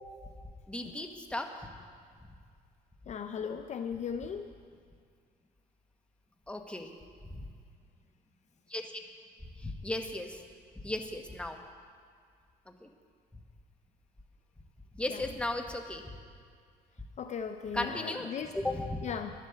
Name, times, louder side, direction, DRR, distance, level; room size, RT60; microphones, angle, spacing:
voice 1, 0.7-1.7 6.5-6.9 7.2-7.4 8.7-8.8 9.6-10.4 10.8-11.6 12.7-12.9 14.9-16.2 17.7-19.0, left 1 dB, 5° left, 4 dB, 1.2 m, -36 dB
voice 2, 3.1-4.5 15.1-15.2 17.2-18.5 19.0-19.3, left 7 dB, 45° left, 8 dB, 0.6 m, -37 dB
11.5 x 10.0 x 6.9 m, 2.1 s
cardioid pair, 110°, 17 cm